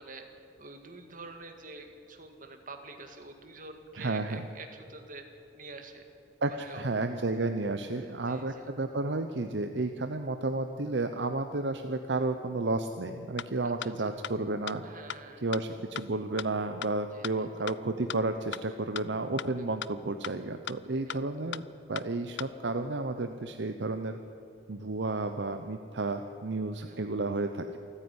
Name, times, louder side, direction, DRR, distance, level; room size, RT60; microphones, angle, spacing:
voice 1, 0.0-5.2 5.5-6.1 6.5-6.9 8.0-8.7 13.6-13.9 14.8-15.6 17.1-17.3 19.6-19.7 21.1-21.2 26.8-27.0, right 3 dB, 45° right, 6 dB, 2.0 m, -47 dB
voice 2, 3.9-4.4 6.4-14.8 15.4-21.6 21.9-24.2 24.7-27.8, right 2 dB, 65° right, 7 dB, 0.8 m, -32 dB
sound 1, 13.4-13.5 13.8-13.9 14.2-14.3 14.7-14.8 15.1-15.2 15.5-15.6 15.9-16.0 16.4-16.5 16.8-16.9 17.2-17.3 17.7-17.8 18.1-18.2 18.5-18.6 19.0-19.1 19.4-19.5 19.8-19.9 20.2-20.3 20.7-20.8 21.1-21.2 21.5-21.6 21.9-22.0 22.4-22.5, left 9 dB, 65° left, 0.4 m, -36 dB
27.0 x 9.9 x 9.7 m, 2.6 s
head